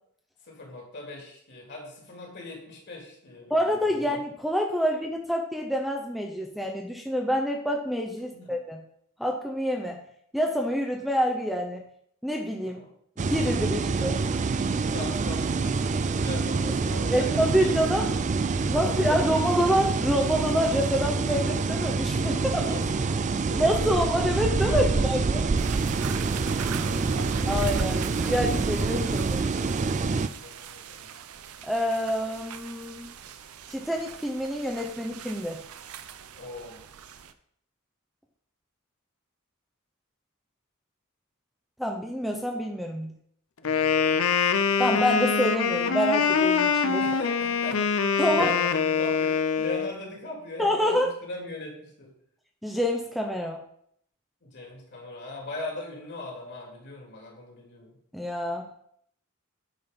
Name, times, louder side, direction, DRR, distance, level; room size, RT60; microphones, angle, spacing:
voice 1, 0.5-3.6 8.3-8.5 12.6-12.9 14.8-18.2 18.8-19.5 22.5-23.6 24.7-25.0 26.5-26.9 28.9-29.1 30.4-31.1 36.3-36.8 43.6-44.2 47.0-47.8 48.3-52.1 54.4-58.0, left 2 dB, 55° left, -1 dB, 2.7 m, -39 dB
voice 2, 3.5-8.8 9.2-10.0 10.3-11.8 12.2-12.8 13.2-14.2 17.1-18.1 18.7-22.7 23.5-25.4 27.4-29.4 31.6-33.1 33.7-35.6 41.8-43.1 44.8-47.0 48.2-48.5 50.6-51.1 52.6-53.6 58.1-58.7, equal, ahead, 2 dB, 0.7 m, -27 dB
sound 1, 13.2-30.3, right 4 dB, 35° right, 0.4 m, -26 dB
sound 2, 25.6-37.3, right 9 dB, 90° right, 0.6 m, -42 dB
Wind instrument woodwind instrument, 43.6-49.9, left 6 dB, 70° left, 0.6 m, -24 dB
8.9 x 4.4 x 5.2 m, 0.68 s
head